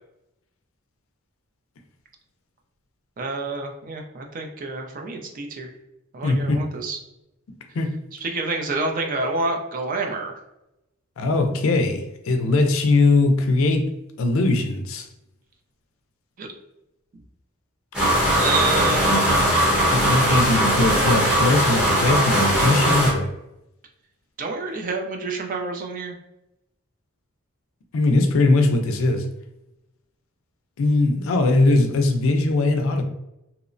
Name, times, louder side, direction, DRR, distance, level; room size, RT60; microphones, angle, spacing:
voice 1, 3.2-5.7 6.1-7.0 8.1-10.4 16.4-16.5 18.2-19.3 24.4-26.2, right 3 dB, 40° right, 2 dB, 0.4 m, -28 dB
voice 2, 6.2-6.6 7.7-7.9 11.2-13.9 14.2-15.1 19.9-23.3 27.9-29.3 30.8-33.1, left 2 dB, 70° left, 6 dB, 0.4 m, -20 dB
sound 1, 17.9-23.1, equal, 5° right, 0.8 m, -19 dB
2.8 x 2.0 x 2.5 m, 0.89 s
head